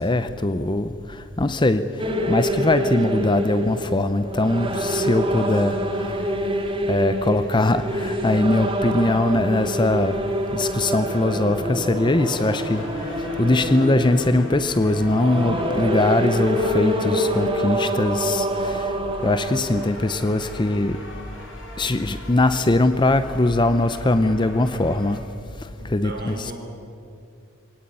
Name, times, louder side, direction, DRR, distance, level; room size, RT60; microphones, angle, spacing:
voice 1, 0.0-6.3 6.9-10.2 10.5-21.0 21.8-25.2 25.6-26.5, left 2 dB, 20° left, 11 dB, 0.6 m, -21 dB
sound 1, 2.0-20.1, equal, 25° right, 2.4 m, -26 dB
sound 2, 7.1-25.2, left 1 dB, 60° left, 5.2 m, -43 dB
voice 2, 25.8-26.5, right 2 dB, 45° right, 1 dB, 5.0 m, -37 dB
23.0 x 18.0 x 8.9 m, 2.4 s
head